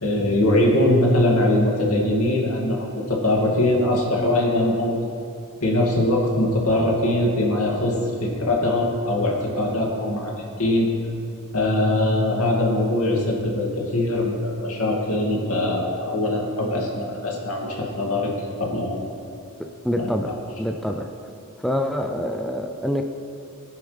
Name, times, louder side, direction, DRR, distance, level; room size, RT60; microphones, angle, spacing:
voice 1, 0.0-5.1 5.6-10.9 11.5-18.3 18.6-19.0 20.0-20.1, left 1 dB, 75° left, -2 dB, 2.5 m, -22 dB
voice 2, 19.6-20.3 20.6-21.1 21.6-23.0, equal, ahead, 4 dB, 0.5 m, -26 dB
20.0 x 10.0 x 3.4 m, 2.6 s
head